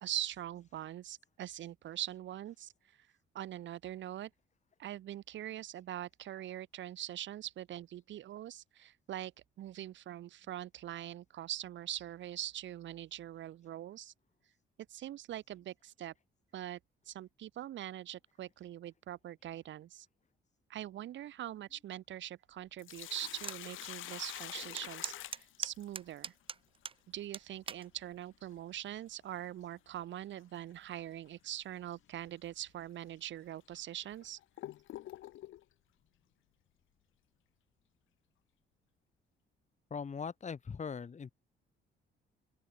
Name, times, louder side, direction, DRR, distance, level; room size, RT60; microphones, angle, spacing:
voice 1, 0.0-2.7 3.3-4.3 4.8-9.3 9.6-14.1 14.9-16.1 16.5-16.8 17.1-20.1 20.7-26.3 27.1-34.4, right 12 dB, 70° right, 1.1 m, -43 dB
Sink (filling or washing), 22.6-26.2 28.6-28.7 30.5-30.8 31.3-31.4 32.1-32.3 33.0-33.1 33.7-35.6, left 14 dB, 85° left, 1.9 m, -46 dB
sound 1, 23.4-23.6 24.1-24.2 24.8-27.0 27.3-27.9 28.6-28.9, right 6 dB, 25° right, 0.5 m, -41 dB
voice 2, 39.9-41.3, left 6 dB, 35° left, 1.8 m, -40 dB
open air
cardioid pair, 90°, 20 cm